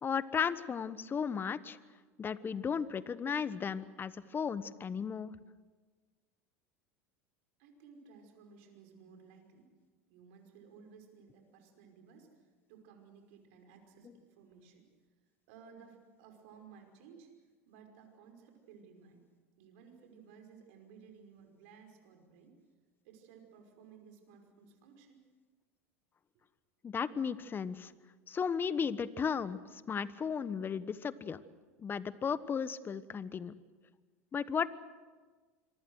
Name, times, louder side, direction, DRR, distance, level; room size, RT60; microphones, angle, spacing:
voice 1, 0.0-1.8 2.2-5.3 26.8-27.9 28.3-31.4 31.8-33.5 34.3-34.7, left 6 dB, 30° left, 16 dB, 1.2 m, -35 dB
voice 2, 7.6-9.7 10.1-14.9 15.5-17.3 17.7-19.2 19.6-22.6 23.0-25.2, right 6 dB, 65° right, 4 dB, 5.4 m, -57 dB
26.5 x 23.5 x 6.4 m, 1.4 s
hypercardioid pair, 85°, 8 cm